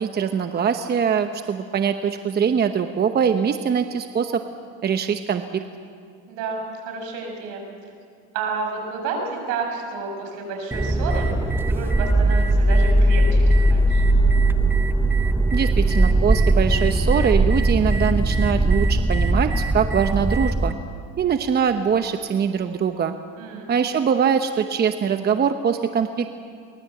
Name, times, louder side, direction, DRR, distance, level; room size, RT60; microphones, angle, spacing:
voice 1, 0.0-4.4 4.8-5.6 15.5-20.7 21.2-23.1 23.7-26.3, right 7 dB, 30° right, 8 dB, 1.0 m, -22 dB
voice 2, 6.3-7.7 8.3-14.0 23.4-23.7, right 4 dB, 75° right, 2 dB, 6.8 m, -30 dB
sound 1, 10.7-20.7, right 2 dB, 5° right, 0.8 m, -19 dB
23.0 x 20.0 x 7.9 m, 2.3 s
supercardioid pair, 115°, 32 cm